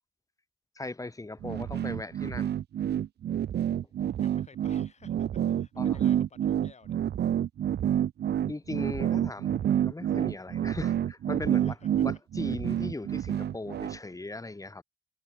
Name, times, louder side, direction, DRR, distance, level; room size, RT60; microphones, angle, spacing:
voice 1, 0.7-2.5 5.8-6.0 8.5-14.8, left 2 dB, 15° left, 4.8 m, -38 dB
sound 1, 1.4-14.0, right 10 dB, 55° right, 0.9 m, -28 dB
voice 2, 4.1-7.0 11.5-12.2, left 5 dB, 35° left, 7.7 m, -56 dB
cardioid pair, 90°, 20 cm